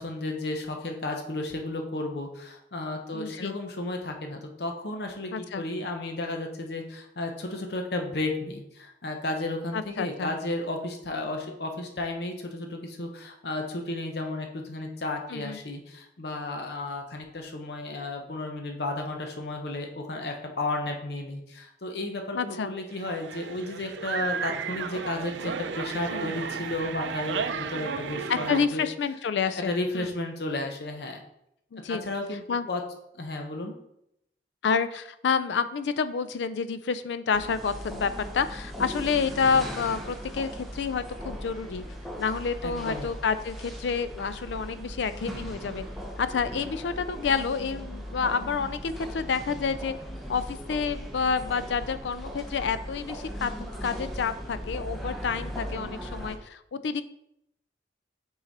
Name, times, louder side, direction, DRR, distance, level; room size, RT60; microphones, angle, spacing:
voice 1, 0.0-28.8 29.5-31.2 31.9-32.4 32.7-32.8 33.1-33.7 42.6-43.1, left 2 dB, 65° left, 3 dB, 0.8 m, -33 dB
voice 2, 3.1-3.6 5.3-5.6 9.7-10.3 15.3-15.6 22.3-22.7 26.1-26.3 28.3-30.1 31.7-32.0 32.5-32.6 34.6-41.8 42.2-45.8 46.2-49.9 50.3-57.0, left 5 dB, 80° left, 13 dB, 0.4 m, -29 dB
sound 1, 22.9-28.7, right 6 dB, 90° right, 0.4 m, -33 dB
sound 2, 37.3-56.4, equal, ahead, 0.7 m, -38 dB
5.9 x 3.9 x 4.1 m, 0.78 s
head